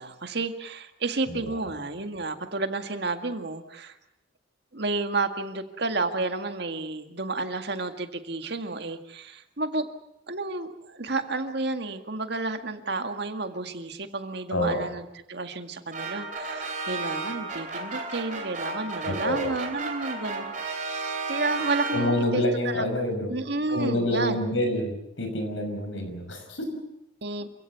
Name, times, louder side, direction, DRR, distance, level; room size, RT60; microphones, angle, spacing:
voice 1, 0.0-3.9 4.7-9.9 10.3-22.8 23.3-24.4 27.2-27.5, right 3 dB, 60° right, 7 dB, 1.9 m, -31 dB
sound 1, 15.9-22.5, right 3 dB, 40° right, 4.0 m, -33 dB
voice 2, 19.0-19.5 21.9-23.3 23.7-26.7, left 1 dB, 85° left, 6 dB, 6.1 m, -27 dB
28.0 x 16.0 x 8.4 m, 0.83 s
head